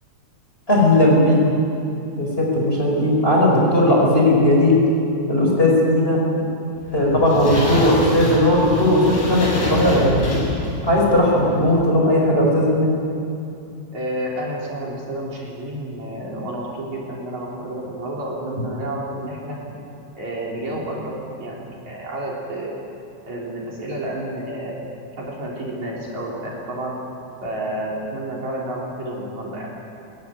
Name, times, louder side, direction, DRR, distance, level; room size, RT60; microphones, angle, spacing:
voice 1, 0.7-1.4 2.1-4.8 5.3-6.2 6.9-10.3 10.8-12.9, left 1 dB, 15° left, -2 dB, 4.9 m, -17 dB
sound 1, 6.8-11.7, left 1 dB, 90° left, 8.6 m, -26 dB
voice 2, 13.9-19.6 20.2-22.8 23.3-24.8 25.2-27.0 27.4-29.7, right 1 dB, 55° right, -4 dB, 5.0 m, -30 dB
22.0 x 17.5 x 9.8 m, 2.7 s
omnidirectional pair, 4.1 m